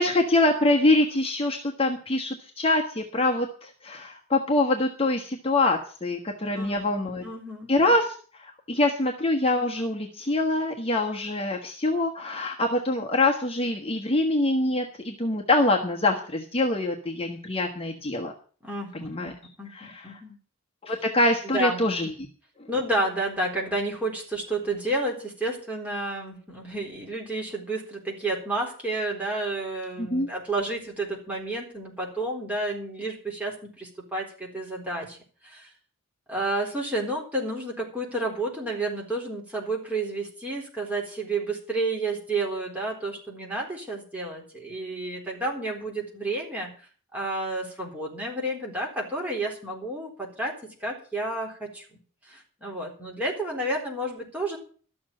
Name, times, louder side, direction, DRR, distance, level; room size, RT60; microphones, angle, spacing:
voice 1, 0.0-7.2 7.7-18.3 19.0-19.3 19.7-20.2 20.8-22.1 30.0-30.3, left 2 dB, 25° left, 1 dB, 1.3 m, -25 dB
voice 2, 6.5-7.8 18.6-19.3 19.6-20.4 21.4-21.9 22.7-35.2 35.4-35.7 36.3-46.7 47.1-51.8 52.3-54.6, right 2 dB, 5° right, -2 dB, 3.9 m, -31 dB
13.0 x 7.2 x 8.6 m, 0.41 s
head